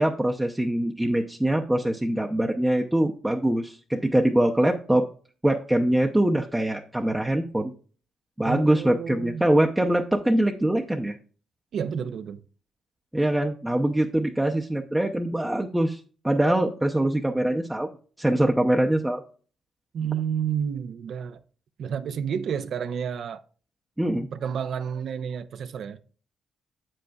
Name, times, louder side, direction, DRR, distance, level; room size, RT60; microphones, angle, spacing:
voice 1, 0.0-5.1 5.4-7.7 8.4-11.2 13.1-16.0 16.2-19.2 24.0-24.3, right 1 dB, 10° right, 0.6 m, -23 dB
voice 2, 8.5-9.4 11.7-12.4 19.9-21.4 21.8-23.4 24.3-26.0, right 7 dB, 65° right, 0.6 m, -30 dB
8.0 x 7.7 x 2.3 m
cardioid pair, 90°, 0 cm